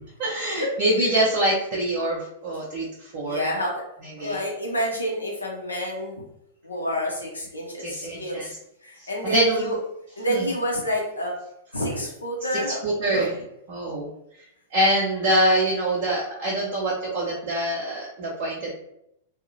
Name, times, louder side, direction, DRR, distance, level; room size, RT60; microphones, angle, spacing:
voice 1, 0.2-3.5 4.0-4.4 7.8-8.5 9.0-9.8 10.3-10.5 12.5-13.3 13.7-14.4 14.7-18.7, right 1 dB, 45° right, -5 dB, 0.6 m, -25 dB
voice 2, 3.2-3.7 4.2-6.2 6.6-8.5 8.8-9.8 10.2-11.4 11.7-13.2, equal, 80° left, -3 dB, 0.5 m, -28 dB
2.6 x 2.0 x 2.6 m, 0.79 s
figure-of-eight pair, 95°, 0 cm